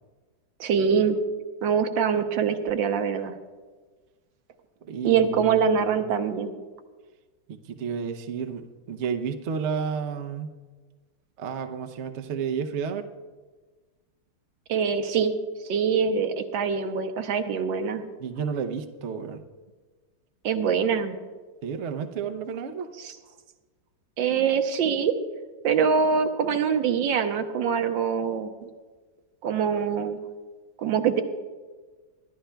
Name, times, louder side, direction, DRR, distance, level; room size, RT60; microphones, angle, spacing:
voice 1, 0.6-1.2 1.6-3.3 5.0-6.5 14.7-15.4 15.7-18.0 20.4-21.2 23.0-23.2 24.2-25.2 25.6-28.5 29.4-30.2 30.8-31.2, right 6 dB, 80° right, 6 dB, 1.6 m, -24 dB
voice 2, 4.8-6.0 7.5-10.5 11.4-13.1 18.2-19.4 21.6-22.9, right 6 dB, 60° right, 7 dB, 0.7 m, -31 dB
24.0 x 11.5 x 2.3 m, 1.4 s
omnidirectional pair, 2.1 m